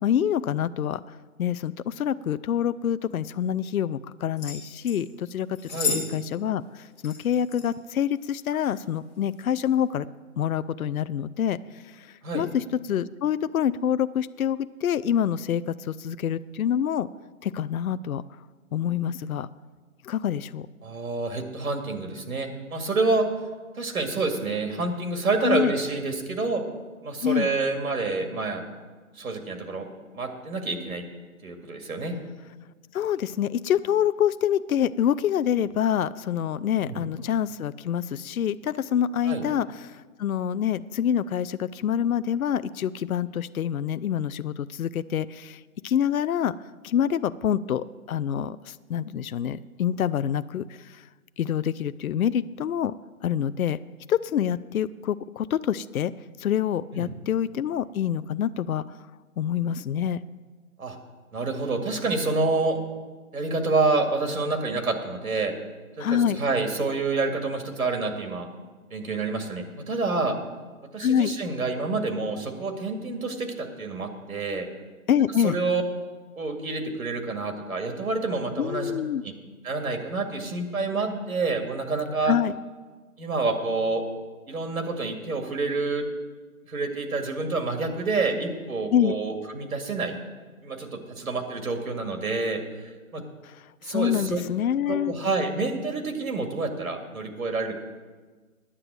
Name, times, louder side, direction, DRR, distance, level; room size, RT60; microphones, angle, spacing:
voice 1, 0.0-10.1 10.4-17.1 17.4-18.2 18.7-19.5 20.0-20.7 25.4-25.7 27.2-27.5 32.9-46.5 46.8-51.0 51.4-52.9 53.2-53.8 54.1-56.1 56.4-59.0 59.4-60.2 66.0-66.4 71.0-71.3 75.1-75.6 78.6-79.2 82.2-82.6 88.9-89.1 93.4-95.1, left 9 dB, 75° left, 14 dB, 0.5 m, -26 dB
sound 1, 4.4-5.0 5.5-6.1 6.3-6.4 7.0-7.7 8.5-8.8 9.3-9.5, left 5 dB, 20° left, 2.0 m, -32 dB
voice 2, 20.8-23.2 23.7-26.6 27.0-28.6 29.2-31.0 31.4-32.1 36.8-37.0 39.2-39.4 56.9-57.1 60.8-61.0 61.3-62.8 63.3-65.5 66.0-68.5 68.9-70.4 70.9-74.7 75.4-75.8 76.4-78.9 79.2-79.3 79.6-82.3 83.2-84.0 84.5-86.1 86.7-90.2 90.6-93.2 93.8-94.4 94.9-97.8, right 3 dB, 75° right, 5 dB, 2.2 m, -28 dB
9.8 x 7.9 x 7.6 m, 1.4 s
hypercardioid pair, 160°, 43 cm